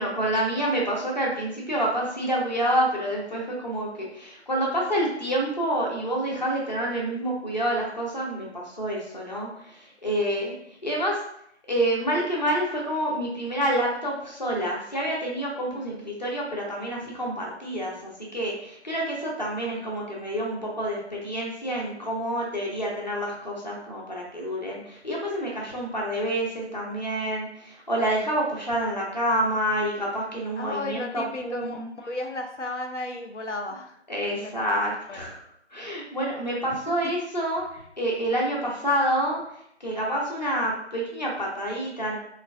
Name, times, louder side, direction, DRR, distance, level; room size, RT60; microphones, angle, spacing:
voice 1, 0.0-10.5 10.8-11.2 11.7-31.9 34.1-35.4 35.7-39.4 39.8-42.2, right 1 dB, 40° left, -3 dB, 0.8 m, -28 dB
voice 2, 15.7-16.0 30.6-34.0 34.4-34.7 35.1-35.3 36.7-36.8, left 2 dB, 85° left, 3 dB, 0.6 m, -34 dB
3.8 x 2.3 x 2.3 m, 0.72 s
figure-of-eight pair, 160°, 35 cm